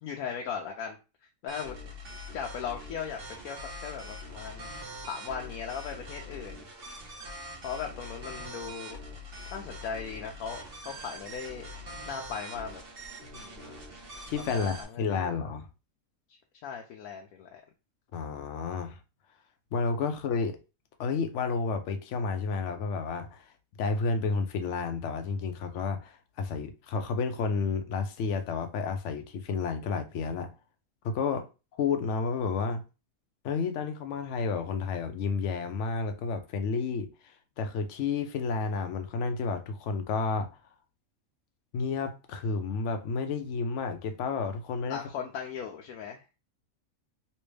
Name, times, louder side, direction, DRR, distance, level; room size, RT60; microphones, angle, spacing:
voice 1, 0.0-1.0 1.4-1.8 2.3-4.7 5.0-6.7 7.6-9.0 9.5-11.7 12.1-12.8 13.3-13.8 14.4-15.5 16.6-17.6 44.9-46.2, left 7 dB, 90° left, 1.1 m, -38 dB
sound 1, 1.5-14.8, equal, 45° right, 1.1 m, -43 dB
voice 2, 14.3-15.7 18.1-19.0 19.7-20.6 21.0-23.4 23.8-30.5 31.0-31.4 31.8-32.8 33.4-40.5 41.7-45.0, left 5 dB, 65° left, 0.9 m, -31 dB
3.3 x 3.0 x 3.2 m
omnidirectional pair, 1.5 m